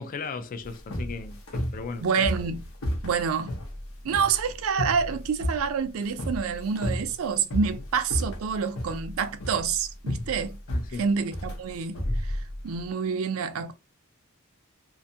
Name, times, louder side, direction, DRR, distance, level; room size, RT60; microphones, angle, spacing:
voice 1, 0.0-2.1 7.7-7.8 10.7-11.1, left 4 dB, 40° left, 0.4 m, -36 dB
sound 1, 0.6-12.9, equal, 85° left, 0.8 m, -33 dB
voice 2, 2.0-2.6 3.0-3.6 4.0-10.6 11.0-12.4 12.6-13.7, right 6 dB, 75° right, 0.4 m, -27 dB
2.5 x 2.3 x 2.6 m
head